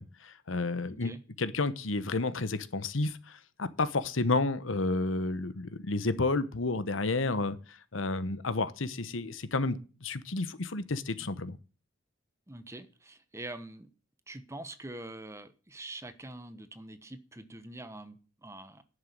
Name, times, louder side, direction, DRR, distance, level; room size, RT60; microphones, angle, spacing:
voice 1, 0.0-1.1 1.4-7.6 7.9-11.6, left 3 dB, 80° left, 1.1 m, -31 dB
voice 2, 0.9-1.2 12.5-13.9 14.3-18.8, right 2 dB, 15° right, 1.1 m, -45 dB
11.0 x 6.7 x 9.1 m
head